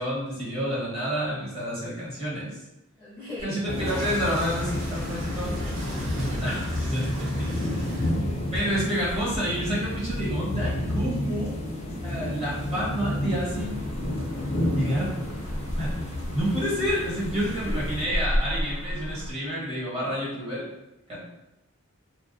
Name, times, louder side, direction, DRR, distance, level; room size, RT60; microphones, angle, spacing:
voice 1, 0.0-2.6 3.4-7.5 8.5-11.5 11.8-13.8 14.7-15.1 15.4-15.9 16.3-20.7 21.1-21.2, equal, 25° right, -8 dB, 1.1 m, -29 dB
voice 2, 3.0-3.6 7.3-8.1 17.3-17.8, left 1 dB, 10° right, -11 dB, 0.6 m, -40 dB
sound 1, 3.4-9.4, right 1 dB, 65° right, 0.9 m, -39 dB
sound 2, 3.7-18.1, left 1 dB, 30° left, 0.5 m, -31 dB
sound 3, 13.5-19.3, equal, 90° right, 0.5 m, -33 dB
2.3 x 2.2 x 2.6 m, 0.95 s
head